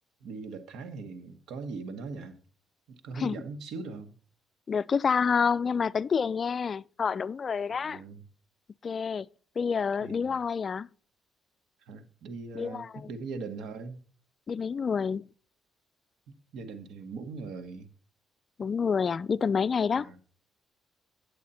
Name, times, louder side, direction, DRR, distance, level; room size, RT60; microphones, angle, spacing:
voice 1, 0.2-2.4 2.9-4.1 7.7-8.2 10.0-10.4 11.8-14.0 16.5-17.9 19.9-20.2, right 4 dB, 80° right, 1.4 m, -40 dB
voice 2, 4.7-8.0 8.8-9.3 9.6-10.9 12.5-13.1 14.5-15.3 18.6-20.1, left 6 dB, 45° left, 0.3 m, -28 dB
8.9 x 8.5 x 4.2 m
cardioid pair, 90°, 0 cm